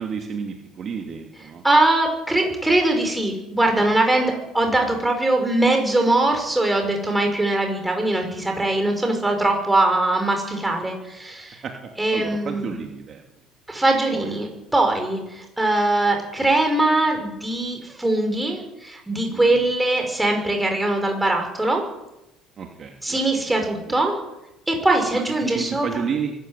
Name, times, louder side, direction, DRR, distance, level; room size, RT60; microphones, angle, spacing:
voice 1, 0.0-1.6 3.8-3.9 8.6-8.7 11.6-13.2 14.1-14.3 19.3-19.6 22.6-23.4 23.9-24.0 25.3-26.3, right 6 dB, 35° right, 2 dB, 2.7 m, -31 dB
voice 2, 1.6-11.6 12.0-12.7 13.7-21.8 23.0-24.2 24.7-25.9, right 2 dB, 5° right, 3 dB, 5.8 m, -21 dB
23.5 x 14.0 x 9.3 m, 0.91 s
cardioid pair, 140°, 0 cm